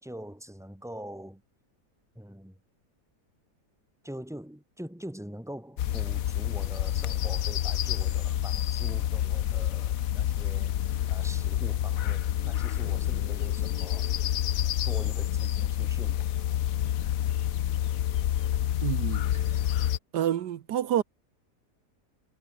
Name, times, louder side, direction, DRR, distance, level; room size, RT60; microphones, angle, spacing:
voice 1, 0.0-1.4 2.1-2.6 4.0-10.7 11.1-14.1 14.8-16.3, equal, ahead, 3.3 m, -43 dB
sound 1, 5.8-20.0, left 11 dB, 65° left, 1.1 m, -28 dB
voice 2, 18.8-19.3 20.1-21.0, right 11 dB, 90° right, 1.6 m, -28 dB
omnidirectional pair, 1.7 m